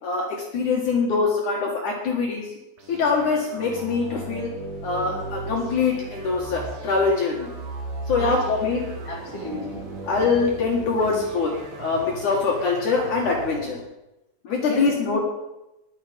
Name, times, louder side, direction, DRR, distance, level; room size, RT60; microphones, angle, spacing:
voice 1, 0.0-2.5 2.9-4.5 4.8-7.5 8.1-8.8 10.0-13.8 14.4-15.2, left 4 dB, 55° left, 0 dB, 2.6 m, -23 dB
sound 1, 2.8-13.8, right 2 dB, 50° right, 3.0 m, -36 dB
voice 2, 9.1-9.9 14.7-15.2, left 2 dB, 10° left, -2 dB, 2.0 m, -33 dB
20.0 x 7.4 x 5.2 m, 0.93 s
omnidirectional pair, 4.8 m